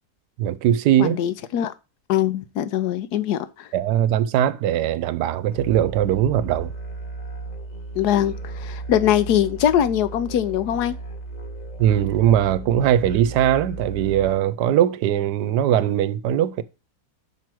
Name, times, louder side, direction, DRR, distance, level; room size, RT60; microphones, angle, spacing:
voice 1, 0.4-1.2 3.7-6.7 11.8-16.6, right 11 dB, 85° right, 1.2 m, -20 dB
voice 2, 1.0-1.7 2.1-3.7 7.9-11.0, left 10 dB, 80° left, 1.2 m, -22 dB
sound 1, 5.5-14.3, right 2 dB, 30° left, 1.1 m, -35 dB
6.0 x 4.7 x 6.0 m
omnidirectional pair, 1.7 m